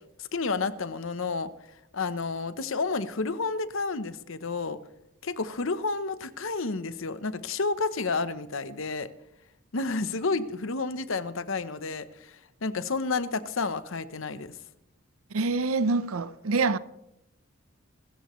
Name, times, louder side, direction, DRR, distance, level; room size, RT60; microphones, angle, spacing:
voice 1, 0.2-1.5 1.9-4.8 5.2-9.1 9.7-12.3 12.6-14.5, left 3 dB, 65° left, 0.9 m, -30 dB
voice 2, 15.3-16.8, right 3 dB, 85° right, 0.7 m, -26 dB
26.0 x 13.5 x 3.2 m
head